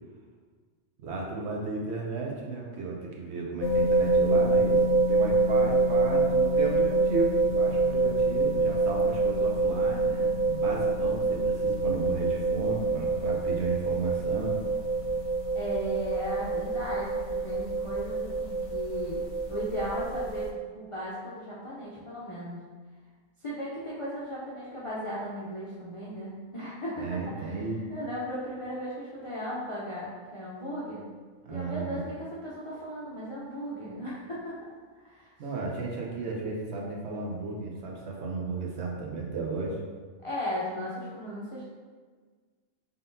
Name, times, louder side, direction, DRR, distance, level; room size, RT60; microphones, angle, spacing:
voice 1, 1.0-14.6 27.0-27.8 31.4-32.0 35.4-39.8, right 3 dB, 65° right, -2 dB, 0.9 m, -34 dB
sound 1, 3.6-20.5, right 3 dB, 75° left, 0.9 m, -26 dB
voice 2, 15.5-19.2 19.5-22.6 23.4-27.6 27.9-31.0 31.5-34.5 35.0-35.3 40.2-41.7, equal, 45° left, -8 dB, 0.4 m, -36 dB
3.7 x 3.7 x 2.6 m, 1.5 s
omnidirectional pair, 1.3 m